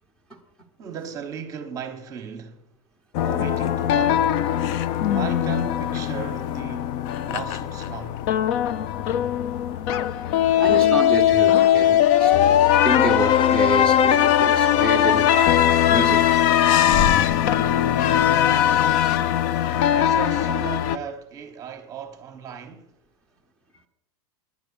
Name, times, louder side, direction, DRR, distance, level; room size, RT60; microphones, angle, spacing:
voice 1, 0.8-2.7 3.2-4.5 5.1-7.0 7.2-8.2 19.9-23.0, right 7 dB, 20° right, 1.0 m, -36 dB
sound 1, 3.1-21.0, left 10 dB, 35° left, 0.4 m, -20 dB
voice 2, 10.6-16.2 19.8-20.0, right 1 dB, 5° left, 0.9 m, -29 dB
9.9 x 9.0 x 6.8 m
supercardioid pair, 175°, 16 cm